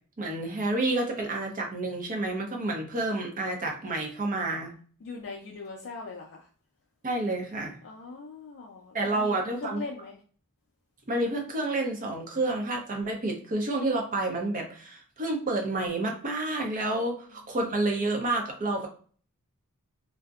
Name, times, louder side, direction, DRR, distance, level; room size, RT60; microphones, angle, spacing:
voice 1, 0.2-4.7 7.0-7.8 8.9-9.8 11.1-18.9, right 2 dB, 35° right, 2 dB, 0.6 m, -29 dB
voice 2, 5.0-6.5 7.8-10.2 17.3-17.4, left 4 dB, 55° left, -1 dB, 0.4 m, -41 dB
2.6 x 2.0 x 2.3 m, 0.44 s
head